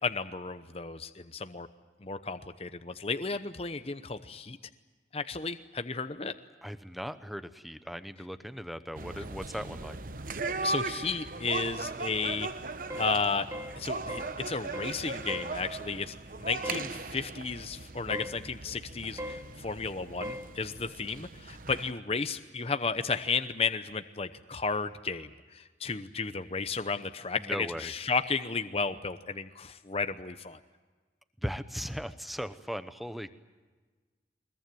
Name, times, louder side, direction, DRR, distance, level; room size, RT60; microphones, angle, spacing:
voice 1, 0.0-1.7 2.0-4.6 5.1-6.3 10.6-12.5 13.0-13.5 13.8-30.6, left 4 dB, 35° left, 10 dB, 0.8 m, -33 dB
voice 2, 6.6-10.0 27.4-27.9 31.4-33.3, equal, ahead, 11 dB, 0.9 m, -38 dB
sound 1, 8.9-21.9, right 3 dB, 50° right, 1.0 m, -38 dB
sound 2, 12.9-13.1 13.5-13.8 14.1-14.3 14.7-15.0 15.3-15.5 16.6-16.9 18.1-18.4 19.2-19.4 20.2-20.5, equal, 15° right, 1.8 m, -38 dB
23.0 x 21.5 x 9.3 m, 1.3 s
head